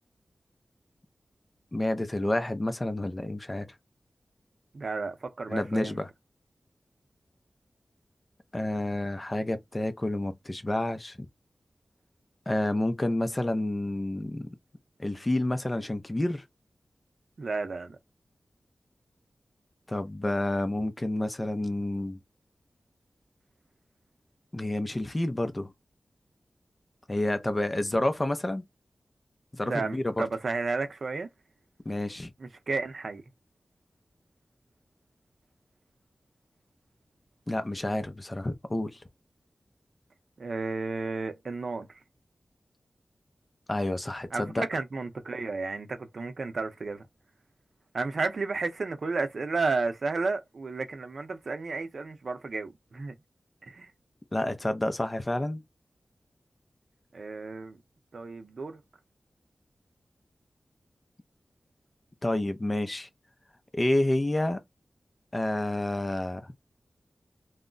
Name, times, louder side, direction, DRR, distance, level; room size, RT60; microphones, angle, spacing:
voice 1, 1.7-3.7 5.5-6.1 8.5-11.2 12.5-14.5 15.0-16.4 19.9-22.2 24.5-25.7 27.1-28.6 29.5-30.2 31.9-32.3 37.5-39.0 43.7-44.7 54.3-55.6 62.2-63.1 63.7-64.6 65.3-66.5, left 1 dB, 25° left, 0.5 m, -29 dB
voice 2, 4.7-6.0 17.4-18.0 29.6-31.3 32.4-33.2 40.4-41.9 44.3-47.0 47.9-53.1 53.7-53.9 57.1-57.8 58.1-58.8, right 3 dB, 70° right, 0.6 m, -32 dB
2.3 x 2.1 x 3.8 m
wide cardioid pair, 85°, 0 cm